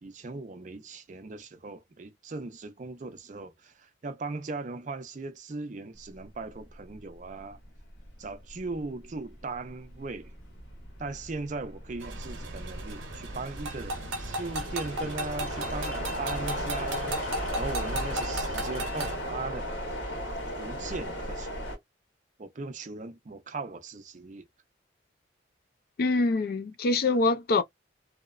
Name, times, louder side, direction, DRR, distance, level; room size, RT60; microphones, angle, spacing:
voice 1, 0.0-7.6 8.2-10.3 11.0-19.7 20.6-21.7 22.4-24.5, right 3 dB, 40° right, 0.5 m, -38 dB
sound 1, 6.8-7.0 7.4-21.8, equal, 85° left, 1.2 m, -36 dB
sound 2, 12.0-19.2, right 1 dB, 90° right, 0.7 m, -36 dB
voice 2, 26.0-27.6, left 3 dB, 55° left, 0.3 m, -24 dB
2.8 x 2.0 x 2.3 m
head